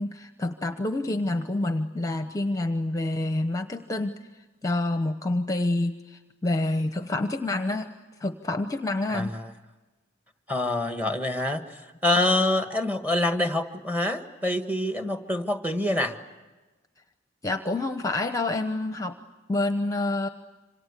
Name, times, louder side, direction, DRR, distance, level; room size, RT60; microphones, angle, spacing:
voice 1, 0.0-4.1 4.6-7.9 8.2-9.3 17.4-19.1 19.5-20.3, left 2 dB, 15° left, 8 dB, 0.9 m, -27 dB
voice 2, 9.1-9.5 10.5-11.6 12.0-16.1, left 1 dB, 10° right, 6 dB, 1.7 m, -26 dB
27.5 x 26.0 x 8.3 m, 1.2 s
head